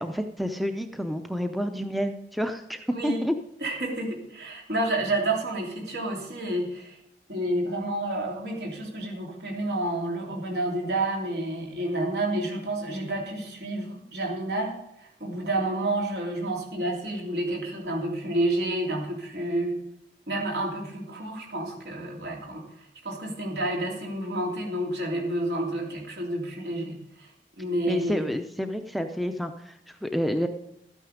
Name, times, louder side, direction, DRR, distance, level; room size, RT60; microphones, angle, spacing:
voice 1, 0.0-3.3 27.9-30.5, equal, ahead, 7 dB, 0.5 m, -29 dB
voice 2, 3.6-7.0 7.3-19.7 20.3-22.6 23.0-27.3 27.6-28.3, right 1 dB, 75° right, 0 dB, 3.0 m, -29 dB
13.0 x 9.1 x 5.1 m, 0.79 s
head